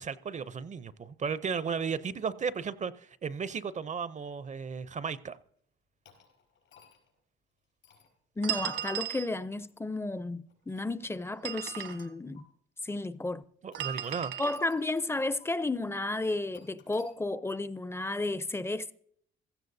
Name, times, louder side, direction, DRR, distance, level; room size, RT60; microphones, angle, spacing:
voice 1, 0.0-5.4 13.6-14.3, right 6 dB, 35° right, 0.6 m, -35 dB
sound 1, 6.0-7.2 7.8-8.1 8.9-9.1 9.5-9.7 10.4-11.6 12.3-12.4 13.7-15.1 15.4-15.5 16.5-17.1, left 7 dB, 75° left, 4.7 m, -61 dB
voice 2, 8.4-12.4 12.8-13.4 14.4-18.9, left 2 dB, 10° left, 0.5 m, -33 dB
sound 2, 8.4-9.3 11.3-12.1 13.8-14.6, right 12 dB, 75° right, 1.3 m, -36 dB
16.0 x 14.0 x 2.7 m
cardioid pair, 90°, 20 cm